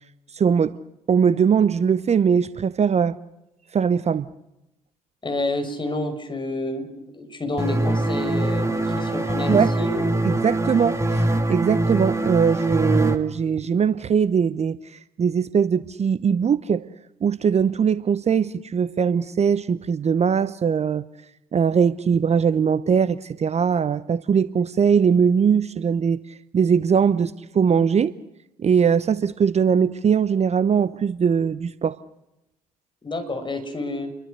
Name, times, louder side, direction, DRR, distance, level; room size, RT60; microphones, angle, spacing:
voice 1, 0.3-0.7 1.1-3.2 3.7-4.3 9.5-9.7 10.2-16.8 17.2-21.0 21.5-26.2 26.5-28.1 28.6-32.0, right 7 dB, 35° right, 15 dB, 0.9 m, -21 dB
voice 2, 5.2-6.9 7.1-10.3 33.0-34.1, left 2 dB, 25° left, 6 dB, 6.1 m, -29 dB
sound 1, 7.6-13.1, right 1 dB, 15° right, 3.0 m, -23 dB
29.5 x 23.0 x 6.6 m, 0.90 s
figure-of-eight pair, 50°, 19 cm